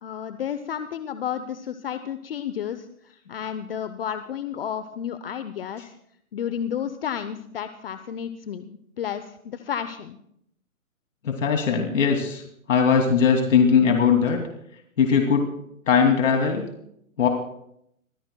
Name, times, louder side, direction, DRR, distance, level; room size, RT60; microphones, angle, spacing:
voice 1, 0.0-5.9 6.3-8.7 9.0-10.2, left 9 dB, 45° left, 11 dB, 0.8 m, -32 dB
voice 2, 11.2-12.4 12.7-14.4 15.0-15.4 15.9-16.6 17.2-17.3, left 6 dB, 60° left, 2 dB, 2.8 m, -19 dB
25.0 x 18.5 x 2.3 m, 0.75 s
hypercardioid pair, 150°, 42 cm